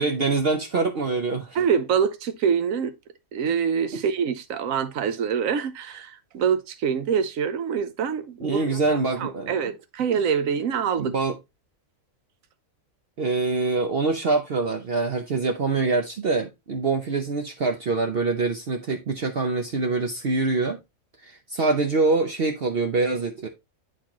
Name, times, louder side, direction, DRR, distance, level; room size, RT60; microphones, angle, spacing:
voice 1, 0.0-1.6 3.9-4.0 8.4-9.6 11.0-11.3 13.2-20.8 21.2-23.5, right 3 dB, 50° right, 0.9 m, -25 dB
voice 2, 1.5-2.9 3.3-8.8 9.2-11.1, right 7 dB, 75° right, 1.1 m, -25 dB
8.4 x 4.2 x 3.0 m
omnidirectional pair, 1.5 m